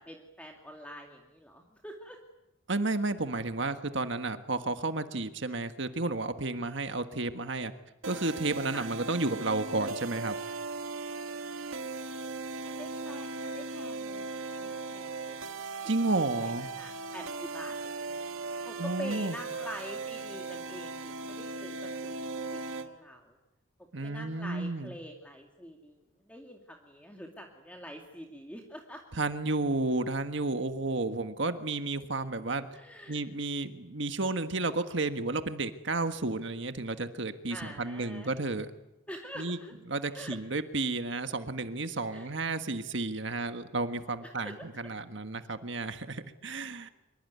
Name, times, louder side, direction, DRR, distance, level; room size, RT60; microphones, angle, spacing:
voice 1, 0.0-2.2 8.7-8.9 12.6-15.4 15.8-18.1 18.6-22.1 22.5-23.4 24.0-29.0 32.7-33.2 37.5-38.3 39.1-39.7 40.1-40.4 42.1-42.3 44.2-44.5, equal, 5° left, 1 dB, 2.4 m, -46 dB
voice 2, 2.7-7.7 8.0-10.3 15.8-16.7 18.8-19.4 23.9-24.9 29.1-32.7 33.1-38.7 39.4-39.6 39.9-46.9, right 2 dB, 60° right, 8 dB, 1.6 m, -32 dB
sound 1, 8.0-22.9, right 3 dB, 85° right, 1.9 m, -38 dB
25.5 x 24.0 x 9.5 m, 0.90 s
head